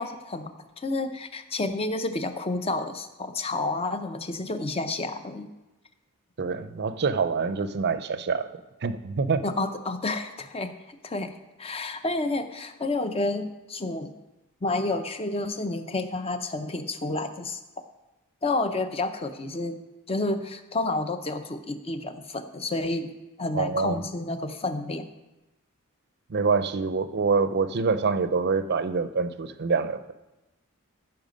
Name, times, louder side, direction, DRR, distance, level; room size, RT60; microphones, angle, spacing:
voice 1, 0.0-5.5 9.4-14.1 14.6-17.6 18.4-19.8 20.1-23.1 23.4-25.1, left 2 dB, 25° left, 8 dB, 0.7 m, -30 dB
voice 2, 6.4-8.5 8.8-9.4 23.6-24.0 26.3-30.1, right 4 dB, 50° right, 12 dB, 0.5 m, -26 dB
14.5 x 5.8 x 5.2 m, 1.0 s
head